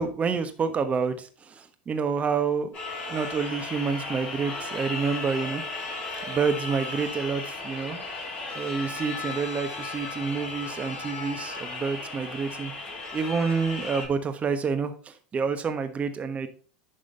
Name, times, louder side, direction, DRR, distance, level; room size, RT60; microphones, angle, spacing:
voice 1, 0.0-2.7 3.1-5.6 6.3-8.0 8.5-12.7 13.1-16.5, right 5 dB, 30° right, 9 dB, 1.2 m, -28 dB
sound 1, 2.7-14.1, left 3 dB, 40° left, 4.4 m, -35 dB
11.0 x 3.8 x 5.2 m, 0.42 s
hypercardioid pair, 90°, 5 cm